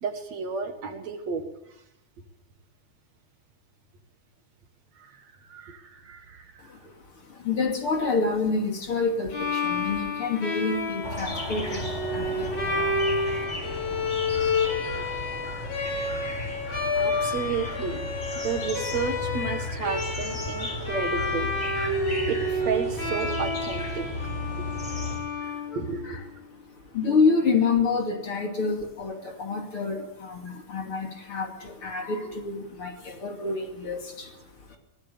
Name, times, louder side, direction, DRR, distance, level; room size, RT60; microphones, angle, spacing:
voice 1, 0.0-1.4 5.0-5.1 5.5-6.5 16.9-18.1 18.4-21.5 22.3-24.1 25.4-25.5 25.8-26.2, right 5 dB, 60° right, 6 dB, 3.0 m, -32 dB
voice 2, 6.6-13.3 25.4-26.2 26.5-26.6 26.9-34.8, left 4 dB, 45° left, 3 dB, 3.3 m, -28 dB
Bowed string instrument, 9.3-26.2, left 2 dB, 75° left, 6.2 m, -30 dB
sound 1, 11.0-25.2, left 2 dB, 20° left, 5.5 m, -35 dB
23.5 x 18.5 x 7.1 m, 0.91 s
omnidirectional pair, 3.5 m